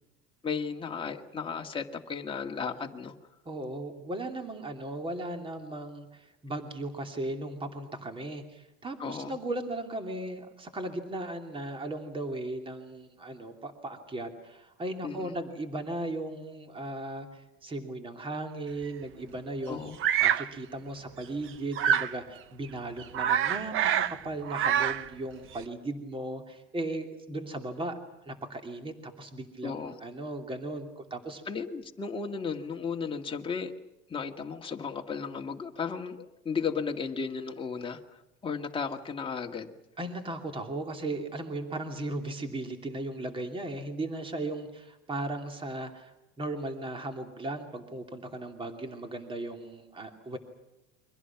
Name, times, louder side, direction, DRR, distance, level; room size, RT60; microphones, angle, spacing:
voice 1, 0.4-3.1 9.0-9.4 15.0-15.3 19.7-20.0 29.6-30.0 31.5-33.7 34.1-39.7, left 5 dB, 15° left, 2 dB, 2.0 m, -35 dB
voice 2, 3.5-19.9 20.2-28.0 28.3-31.4 40.0-50.4, right 2 dB, 15° right, 5 dB, 2.8 m, -37 dB
Bird vocalization bird call bird song, 20.0-20.5 21.8-22.2 22.6-22.7 23.0-24.2 24.4-25.1, right 9 dB, 40° right, 0.9 m, -26 dB
29.5 x 24.0 x 6.0 m, 0.94 s
cardioid pair, 150°, 32 cm